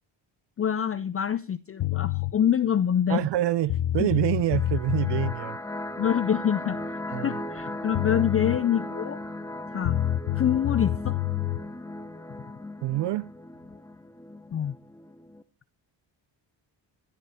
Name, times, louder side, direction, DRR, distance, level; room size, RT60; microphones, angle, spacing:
voice 1, 0.6-3.3 4.0-4.1 6.0-9.2 9.7-10.0 10.4-11.2 14.5-14.7, left 9 dB, 30° left, 0.5 m, -26 dB
sound 1, 1.8-2.3 3.3-3.4 3.7-5.4 7.6-7.7 7.9-8.6 9.8-11.6, left 14 dB, 70° left, 0.9 m, -27 dB
voice 2, 3.1-5.6 7.1-7.4 12.8-13.3, right 15 dB, 65° right, 0.6 m, -26 dB
sound 2, 4.4-15.4, left 1 dB, 5° left, 0.9 m, -37 dB
12.5 x 11.0 x 4.3 m
cardioid pair, 105°, 45 cm